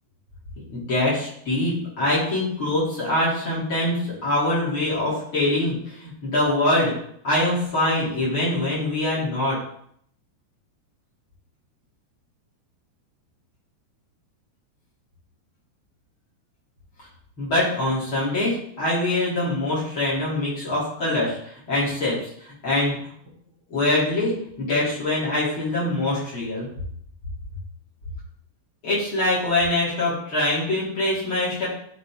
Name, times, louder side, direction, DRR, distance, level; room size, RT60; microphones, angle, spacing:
voice 1, 0.7-6.9 7.2-9.6 17.4-23.0 23.7-26.7 28.8-31.7, left 1 dB, 35° left, -7 dB, 3.5 m, -24 dB
10.0 x 4.9 x 3.7 m, 0.66 s
omnidirectional pair, 4.5 m